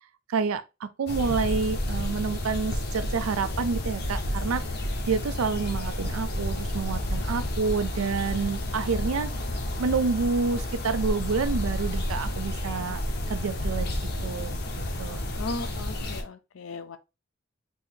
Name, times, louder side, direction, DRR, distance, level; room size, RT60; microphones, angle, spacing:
voice 1, 0.3-4.7 5.1-9.3 9.8-13.0 13.3-13.9 14.2-14.6 15.0-15.2, right 5 dB, 85° right, 0.4 m, -28 dB
sound 1, 1.1-16.2, left 1 dB, 50° left, 0.8 m, -30 dB
voice 2, 15.4-17.0, left 3 dB, 75° left, 0.5 m, -36 dB
4.1 x 2.7 x 3.4 m
head